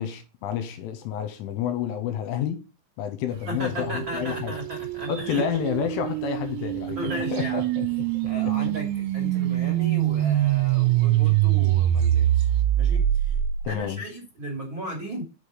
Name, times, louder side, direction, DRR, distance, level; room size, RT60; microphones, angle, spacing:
voice 1, 0.0-2.6 3.0-4.6 5.1-7.9 8.4-8.5 13.6-14.0, left 9 dB, 80° left, 3.2 m, -29 dB
sound 1, 3.3-12.6, right 5 dB, 70° right, 3.4 m, -48 dB
voice 2, 3.5-5.5 7.0-7.7 8.2-12.5 12.8-13.3 13.7-15.2, right 1 dB, 40° right, 1.8 m, -35 dB
sound 2, 3.8-13.8, right 13 dB, 90° right, 3.3 m, -24 dB
7.1 x 4.8 x 5.5 m
omnidirectional pair, 6.0 m